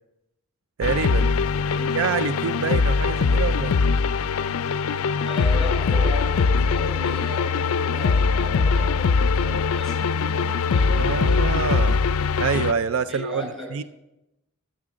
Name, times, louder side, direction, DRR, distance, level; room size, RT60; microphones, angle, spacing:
sound 1, 0.8-12.7, left 5 dB, 70° left, 0.4 m, -22 dB
voice 1, 0.8-1.3 1.9-3.8 10.9-12.0 12.4-13.8, right 6 dB, 60° right, 13 dB, 0.4 m, -26 dB
voice 2, 5.2-11.5 13.1-13.7, left 1 dB, ahead, 0 dB, 5.8 m, -35 dB
13.5 x 8.5 x 6.2 m, 0.91 s
head